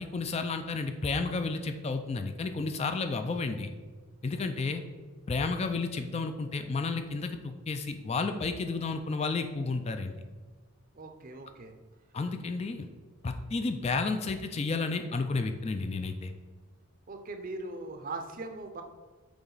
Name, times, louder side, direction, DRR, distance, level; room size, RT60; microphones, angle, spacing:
voice 1, 0.0-3.7 4.2-4.8 5.3-10.1 12.1-12.9 13.2-16.3, left 3 dB, 30° left, 7 dB, 0.3 m, -32 dB
voice 2, 10.9-11.7 17.1-18.8, right 3 dB, 40° right, 6 dB, 0.6 m, -40 dB
7.1 x 4.4 x 3.9 m, 1.4 s
head